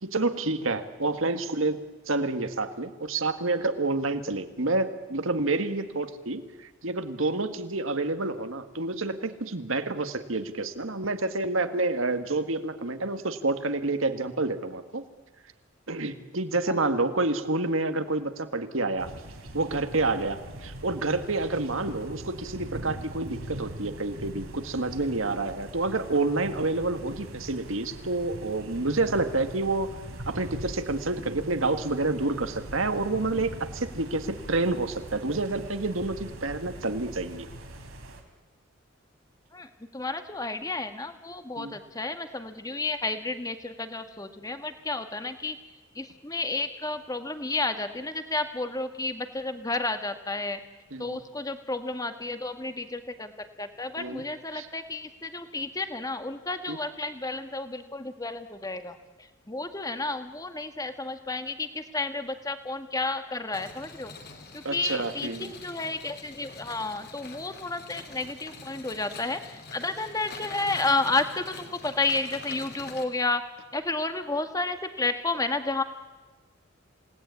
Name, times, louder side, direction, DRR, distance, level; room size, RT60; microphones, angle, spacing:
voice 1, 0.0-1.8 2.1-15.0 15.9-19.1 19.5-29.9 30.3-37.5 41.6-41.8 50.9-51.2 54.0-54.2 54.5-54.7 56.7-56.8 64.6-65.5, right 2 dB, 75° right, 9 dB, 1.9 m, -28 dB
sound 1, 19.0-38.2, right 1 dB, 90° right, 4.0 m, -42 dB
voice 2, 39.5-45.6 45.9-50.6 51.0-59.0 59.5-64.1 64.5-73.4 73.7-75.8, left 3 dB, 15° left, 8 dB, 1.6 m, -31 dB
sound 2, 63.5-73.0, left 4 dB, 50° left, 3.2 m, -44 dB
28.0 x 18.5 x 9.6 m, 1.2 s
head